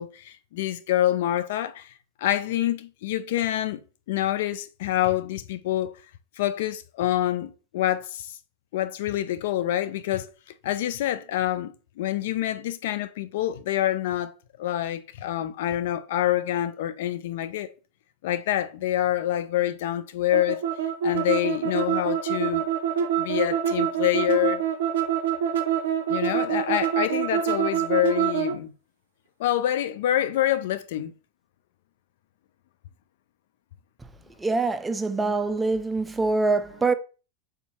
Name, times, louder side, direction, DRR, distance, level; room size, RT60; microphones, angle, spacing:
voice 1, 0.0-1.9 2.2-3.8 4.1-5.9 6.4-8.3 8.7-10.3 10.6-14.3 14.6-17.7 18.2-20.6 21.0-22.6 23.2-24.6 26.1-28.7 29.4-31.1, left 13 dB, 70° left, 0.3 m, -26 dB
sound 1, 20.3-28.6, right 9 dB, 75° right, 0.4 m, -25 dB
voice 2, 34.4-36.9, right 3 dB, 15° right, 0.3 m, -24 dB
3.4 x 2.7 x 2.9 m
hypercardioid pair, 95°, 0 cm